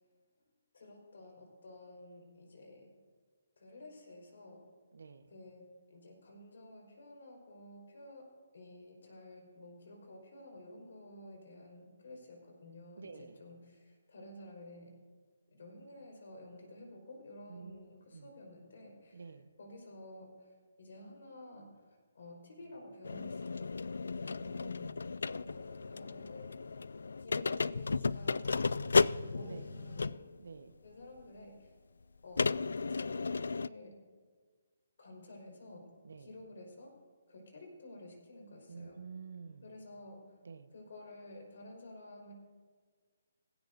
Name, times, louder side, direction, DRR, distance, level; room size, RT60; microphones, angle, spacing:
voice 1, 0.7-2.9 3.6-4.6 5.3-8.3 8.5-15.0 15.5-19.2 19.6-26.8 27.2-30.2 30.8-31.7 32.2-33.9 35.0-35.9 36.2-36.9 37.3-39.0 39.6-40.2 40.7-42.3, left 1 dB, 60° left, 0 dB, 4.7 m, -52 dB
voice 2, 4.9-5.3 13.0-13.4 17.5-17.8 18.1-18.3 19.1-19.5 24.7-25.1 29.4-29.7 30.4-30.7 36.0-36.3 38.7-39.7 40.4-40.7, right 5 dB, 80° right, 9 dB, 1.1 m, -49 dB
sound 1, 23.0-30.4 31.2-31.3 32.4-33.7, left 4 dB, 90° left, 0.3 m, -34 dB
17.5 x 16.0 x 2.7 m, 1.6 s
hypercardioid pair, 175°, 0 cm